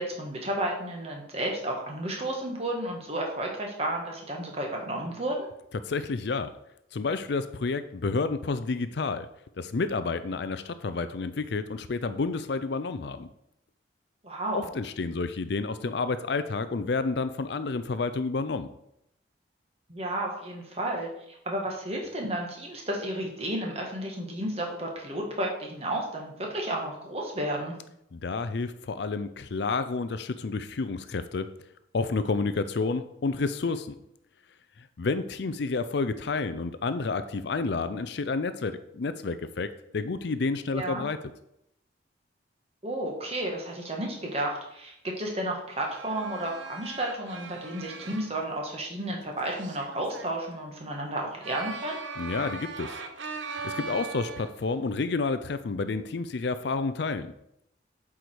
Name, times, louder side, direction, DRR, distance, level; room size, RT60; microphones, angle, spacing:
voice 1, 0.0-5.5 14.2-14.7 19.9-27.7 37.9-38.0 40.7-41.0 42.8-52.0, right 1 dB, 30° right, 0 dB, 1.6 m, -32 dB
voice 2, 5.8-6.6 6.9-9.3 9.6-13.3 14.5-18.7 28.1-31.5 31.9-33.9 34.8-41.2 52.2-53.0 53.3-57.3, left 4 dB, 60° left, 12 dB, 0.5 m, -30 dB
sound 1, 45.6-48.3 49.5-50.4 51.4-54.6, right 4 dB, 75° right, 0.8 m, -40 dB
8.0 x 4.9 x 4.7 m, 0.78 s
head